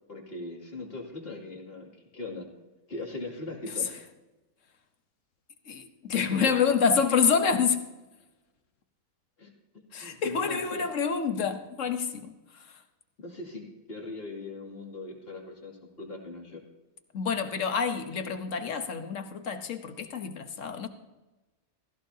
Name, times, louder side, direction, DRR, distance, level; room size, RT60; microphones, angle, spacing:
voice 1, 0.1-2.5 2.9-3.9 6.1-6.5 9.4-10.8 13.2-15.7 16.0-16.6, left 2 dB, 40° left, -2 dB, 2.9 m, -40 dB
voice 2, 5.7-7.8 9.9-12.3 17.1-20.9, left 6 dB, 60° left, 8 dB, 1.4 m, -27 dB
16.5 x 16.0 x 2.8 m, 1.1 s
omnidirectional pair, 1.6 m